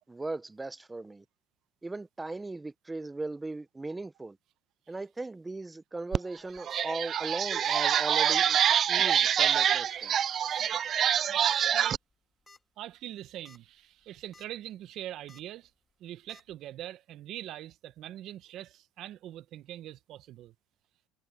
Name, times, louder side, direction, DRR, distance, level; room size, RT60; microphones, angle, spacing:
voice 1, 0.1-1.2 1.8-4.4 4.9-8.6 8.9-10.3, right 2 dB, 15° right, 0.8 m, -38 dB
sound 1, 6.1-6.2 6.6-12.0, right 9 dB, 45° right, 0.3 m, -26 dB
sound 2, 6.4-6.8 7.6-7.9 8.1-8.2 8.6-8.7 9.5-9.8 10.5-10.6 11.5-11.6 12.1-12.2 12.5-12.6 13.3-13.6 14.0-14.5 15.3-15.4 16.3-16.4, left 3 dB, 15° left, 2.5 m, -55 dB
voice 2, 12.8-15.7 16.0-20.5, right 13 dB, 60° right, 1.0 m, -43 dB
supercardioid pair, 100°, 0 cm